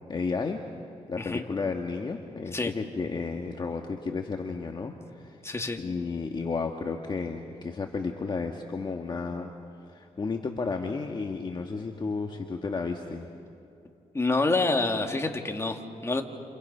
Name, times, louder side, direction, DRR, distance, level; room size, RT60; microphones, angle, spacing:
voice 1, 0.1-0.6 1.1-5.4 5.8-9.5 9.9-13.3, left 4 dB, 35° left, 3 dB, 1.6 m, -32 dB
voice 2, 5.4-5.8 14.1-16.2, left 3 dB, 20° left, 3 dB, 2.3 m, -27 dB
29.5 x 29.0 x 5.6 m, 2.6 s
cardioid pair, 90°, 13 cm